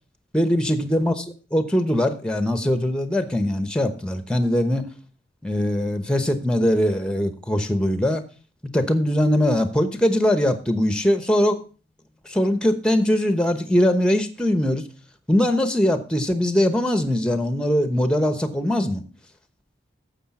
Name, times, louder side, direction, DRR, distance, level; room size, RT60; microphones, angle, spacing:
voice 1, 0.3-1.2 1.5-4.9 5.4-8.2 8.7-11.6 12.2-14.8 15.3-19.0, left 1 dB, 5° left, 10 dB, 0.9 m, -21 dB
9.9 x 7.3 x 5.9 m, 0.37 s
head